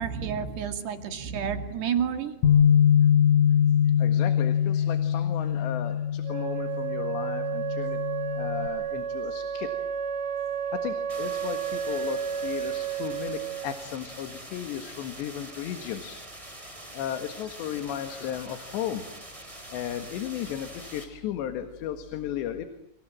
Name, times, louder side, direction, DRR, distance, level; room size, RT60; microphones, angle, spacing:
voice 1, 0.0-2.3, right 7 dB, 70° right, 7 dB, 4.4 m, -30 dB
Bass guitar, 2.4-8.7, left 9 dB, 55° left, 4.4 m, -23 dB
voice 2, 4.0-8.0 8.4-9.7 10.7-16.2 16.7-19.0 19.7-22.7, left 10 dB, 80° left, 8 dB, 3.8 m, -35 dB
Wind instrument woodwind instrument, 6.2-14.0, right 8 dB, 50° right, 2.6 m, -32 dB
sound 1, 11.1-21.0, right 1 dB, 10° right, 3.8 m, -44 dB
29.0 x 27.0 x 7.5 m, 0.73 s
omnidirectional pair, 5.0 m